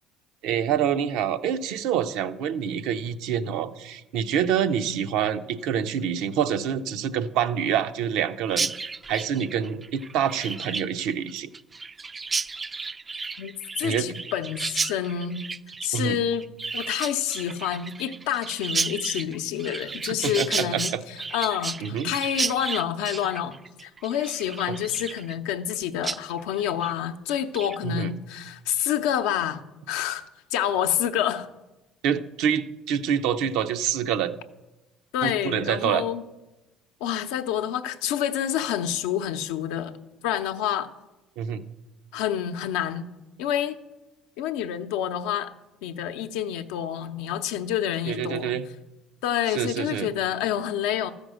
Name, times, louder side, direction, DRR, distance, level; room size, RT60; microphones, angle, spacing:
voice 1, 0.4-8.7 9.1-11.5 13.8-14.1 15.9-16.2 20.1-21.0 21.8-22.1 24.7-24.8 27.8-28.1 32.0-34.4 35.2-36.0 41.4-41.6 48.1-48.6 49.5-50.1, right 8 dB, 75° right, 10 dB, 0.6 m, -26 dB
Chirp tweet, 8.5-25.7 26.0-26.2 26.5-26.9 27.3-27.8, right 4 dB, 30° right, 0.3 m, -33 dB
voice 2, 13.4-15.5 15.8-16.5 16.7-20.9 21.3-23.6 23.8-29.6 29.9-30.2 30.5-31.5 35.1-36.2 37.0-40.0 40.2-40.9 42.1-43.1 43.4-43.8 44.4-45.5 45.8-48.5 49.2-51.1, left 10 dB, 80° left, 8 dB, 0.6 m, -28 dB
13.5 x 5.2 x 6.3 m, 1.1 s
supercardioid pair, 80°, 0 cm